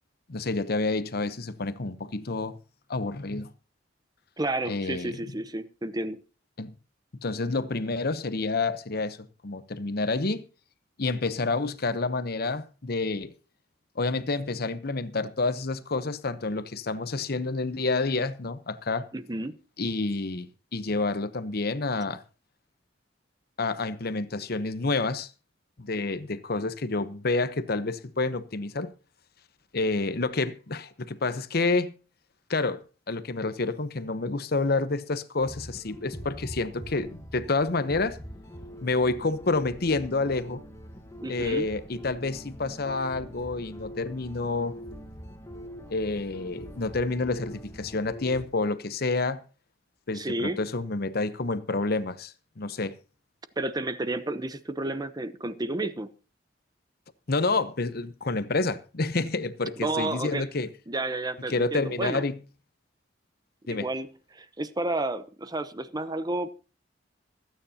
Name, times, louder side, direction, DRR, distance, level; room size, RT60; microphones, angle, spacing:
voice 1, 0.3-2.6 2.9-3.5 4.7-5.2 6.6-6.7 7.2-9.2 9.4-10.4 11.0-13.3 14.0-19.1 19.8-22.2 23.6-25.3 25.8-28.9 29.7-31.9 32.5-32.8 33.1-38.2 38.8-40.6 41.3-44.8 45.9-49.4 50.1-52.9 57.3-60.7 61.5-62.4 63.7-63.9, left 3 dB, 55° left, 0.9 m, -28 dB
voice 2, 4.4-6.2 19.1-19.6 41.2-41.7 50.1-50.6 53.6-56.1 59.8-60.5 60.9-62.2 63.7-66.5, right 2 dB, 20° right, 0.8 m, -31 dB
sound 1, 35.4-48.4, equal, 15° left, 1.5 m, -43 dB
26.0 x 9.4 x 2.9 m
head